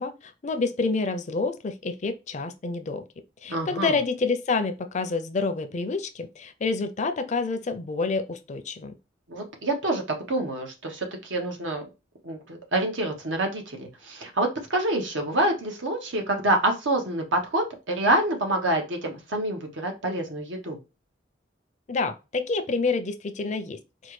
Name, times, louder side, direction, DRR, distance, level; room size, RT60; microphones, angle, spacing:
voice 1, 0.0-3.0 3.4-8.9 21.9-24.1, left 4 dB, 40° left, 0.4 m, -28 dB
voice 2, 3.5-4.0 9.3-10.0 10.3-11.8 12.2-20.8, right 1 dB, 90° right, 1.1 m, -27 dB
4.3 x 2.2 x 3.1 m
head